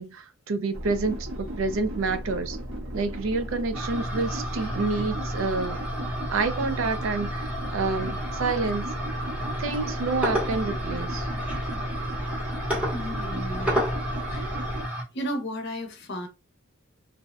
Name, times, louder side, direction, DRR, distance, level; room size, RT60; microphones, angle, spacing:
voice 1, 0.0-2.6 2.9-5.8 6.3-8.9 9.6-11.3, right 3 dB, 65° right, 0.4 m, -28 dB
sound 1, 0.7-14.9, right 1 dB, 85° right, 1.0 m, -35 dB
sound 2, 3.7-15.0, equal, 5° right, 0.8 m, -31 dB
voice 2, 12.9-13.8 14.3-14.8 15.1-16.3, equal, 50° left, 0.7 m, -34 dB
2.6 x 2.0 x 2.4 m
head